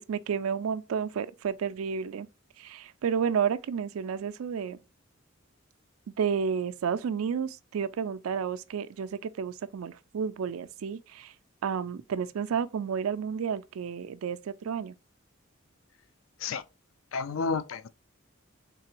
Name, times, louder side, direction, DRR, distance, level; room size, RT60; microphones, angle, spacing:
voice 1, 0.0-2.3 2.6-4.8 6.2-11.3 11.6-14.9, right 7 dB, 85° right, 0.4 m, -31 dB
voice 2, 17.1-17.9, left 4 dB, 70° left, 0.4 m, -31 dB
3.7 x 3.3 x 2.8 m
head